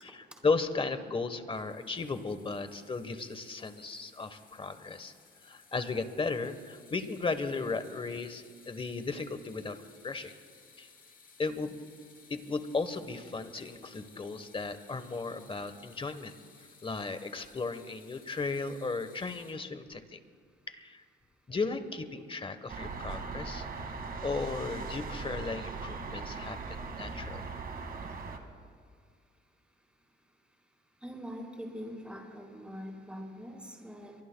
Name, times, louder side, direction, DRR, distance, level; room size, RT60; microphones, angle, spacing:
voice 1, 0.0-5.1 5.4-9.8 10.0-10.3 10.8-10.9 11.4-11.8 12.3-16.4 16.8-20.2 20.7-21.0 21.5-23.7 24.2-27.4, left 4 dB, 25° left, 11 dB, 1.2 m, -35 dB
sound 1, 1.5-19.5, left 5 dB, 45° left, 3.3 m, -59 dB
sound 2, 22.7-28.4, right 4 dB, 50° right, 2.0 m, -39 dB
voice 2, 31.0-34.2, equal, 5° right, -1 dB, 4.2 m, -43 dB
23.5 x 23.0 x 2.3 m, 2.1 s
cardioid pair, 90°, 20 cm